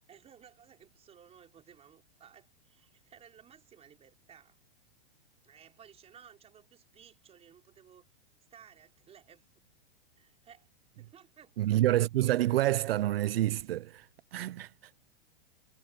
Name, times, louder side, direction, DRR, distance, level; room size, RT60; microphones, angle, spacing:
voice 1, 0.1-4.6 5.4-8.1 8.5-9.6 10.1-10.7 11.0-11.7 14.3-14.4, right 8 dB, 20° right, 4.9 m, -57 dB
voice 2, 11.6-14.9, right 14 dB, 75° right, 0.7 m, -28 dB
hypercardioid pair, 135°, 30 cm